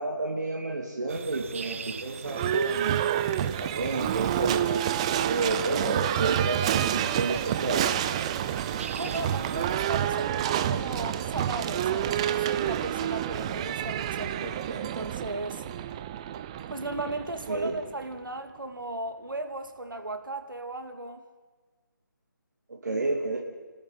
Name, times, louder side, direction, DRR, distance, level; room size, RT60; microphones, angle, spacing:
voice 1, 0.0-3.1 3.4-4.8 5.3-7.8 17.5-17.8 22.7-23.4, right 3 dB, 55° right, -1 dB, 3.1 m, -31 dB
sound 1, 1.1-9.7, right 6 dB, 40° right, 1.2 m, -43 dB
Livestock farm animals working animals / Bell, 2.2-18.1, right 10 dB, 15° right, 0.6 m, -29 dB
voice 2, 8.9-15.6 16.7-21.2, right 2 dB, 75° right, 7 dB, 2.6 m, -36 dB
29.0 x 13.0 x 8.6 m, 1.4 s
figure-of-eight pair, 155°, 11 cm